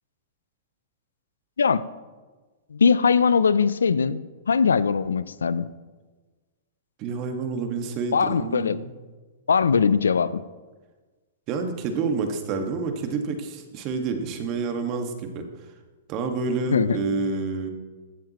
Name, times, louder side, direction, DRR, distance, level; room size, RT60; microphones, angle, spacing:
voice 1, 2.7-4.2 4.5-5.7 8.1-8.8 9.5-10.4 16.7-17.0, left 5 dB, 90° left, 16 dB, 0.5 m, -21 dB
voice 2, 7.0-8.9 11.5-15.4 16.1-17.7, right 4 dB, 40° right, 5 dB, 1.7 m, -28 dB
15.0 x 10.5 x 3.1 m, 1.3 s
hypercardioid pair, 120°, 0 cm